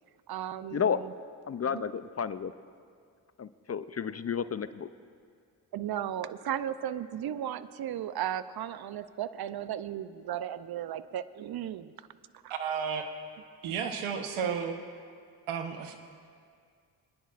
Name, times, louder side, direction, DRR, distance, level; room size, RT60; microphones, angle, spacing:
voice 1, 0.3-1.1 1.6-1.8 5.7-12.0 12.4-12.5, right 10 dB, 50° right, 14 dB, 0.6 m, -35 dB
voice 2, 1.5-2.5 3.4-4.9, left 7 dB, 30° left, 13 dB, 0.5 m, -31 dB
voice 3, 12.5-13.1 13.6-14.8 15.5-16.0, right 7 dB, 80° right, 6 dB, 1.1 m, -32 dB
27.0 x 10.0 x 2.5 m, 2.1 s
hypercardioid pair, 40°, 49 cm